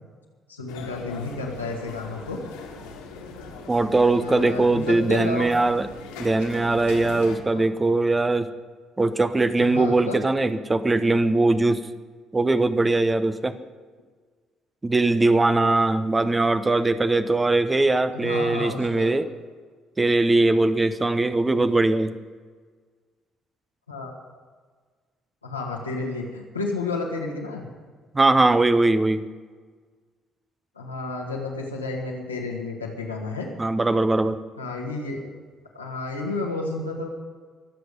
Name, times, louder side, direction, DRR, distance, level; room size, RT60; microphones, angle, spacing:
voice 1, 0.5-2.4 4.0-5.5 7.6-7.7 9.6-10.2 18.1-19.1 23.9-24.1 25.4-27.7 30.8-33.5 34.6-35.3 35.7-37.1, left 3 dB, 90° left, -2 dB, 2.1 m, -31 dB
sound 1, 0.7-7.4, left 4 dB, 75° left, 2.4 m, -40 dB
voice 2, 3.7-5.9 6.2-8.5 9.0-11.9 12.3-13.6 14.8-19.3 20.0-22.1 28.1-29.2 33.6-34.4, right 2 dB, 20° right, 11 dB, 1.0 m, -21 dB
23.0 x 8.1 x 5.2 m, 1.5 s
figure-of-eight pair, 50°, 0 cm